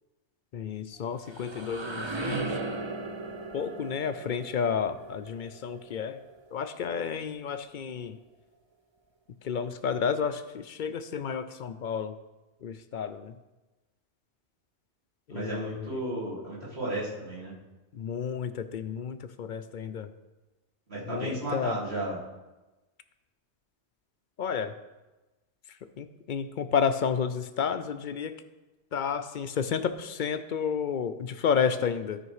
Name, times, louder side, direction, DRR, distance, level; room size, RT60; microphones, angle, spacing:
voice 1, 0.5-2.4 3.5-6.2 6.5-8.2 9.4-12.1 12.6-13.3 15.3-16.0 17.9-20.1 21.1-21.8 24.4-24.7 26.0-28.4 28.9-32.2, left 7 dB, 55° left, 11 dB, 0.6 m, -31 dB
sound 1, 1.0-6.7, right 2 dB, 30° right, 0.7 m, -37 dB
voice 2, 15.3-17.5 20.9-22.2, right 1 dB, 70° right, -8 dB, 3.5 m, -33 dB
13.0 x 5.0 x 4.8 m, 1.1 s
omnidirectional pair, 1.1 m